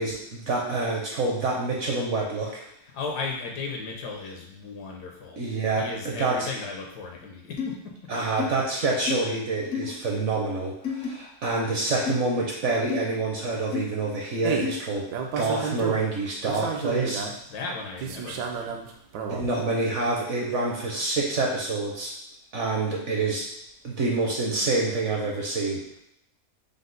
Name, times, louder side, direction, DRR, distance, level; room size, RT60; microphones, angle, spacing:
voice 1, 0.0-2.6 5.4-6.5 8.1-15.1 15.3-17.3 19.3-22.1 22.5-23.5 23.8-25.8, right 3 dB, 60° right, -2 dB, 0.9 m, -27 dB
voice 2, 2.9-5.4 5.8-7.9 17.5-18.8, left 4 dB, 80° left, 1 dB, 1.4 m, -35 dB
sound 1, 7.6-7.7 8.4-8.5 9.1-9.2 9.7-9.9 10.8-11.1 12.1-12.2 12.9-13.0 13.7-13.8 14.6-14.8, left 7 dB, 60° left, 0.7 m, -29 dB
sound 2, 14.4-14.8 15.1-16.1 16.4-17.3 18.0-19.4, right 5 dB, 80° right, 1.1 m, -31 dB
5.3 x 2.1 x 3.8 m, 0.77 s
omnidirectional pair, 1.8 m